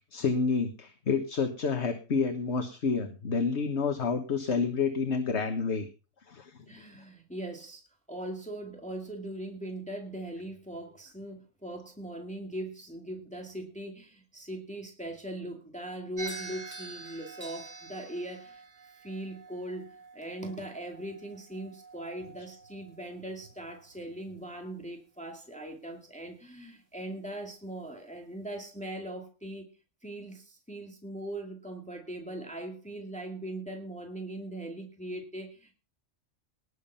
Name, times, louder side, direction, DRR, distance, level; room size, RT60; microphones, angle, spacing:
voice 1, 0.1-5.9 6.3-6.6, left 5 dB, 65° left, 7 dB, 1.6 m, -29 dB
voice 2, 6.7-18.6 19.0-29.7 30.0-35.7, right 1 dB, 5° left, 3 dB, 2.3 m, -40 dB
sound 1, 16.2-24.5, right 3 dB, 80° right, 2.7 m, -47 dB
19.5 x 7.3 x 5.7 m, 0.34 s
omnidirectional pair, 1.3 m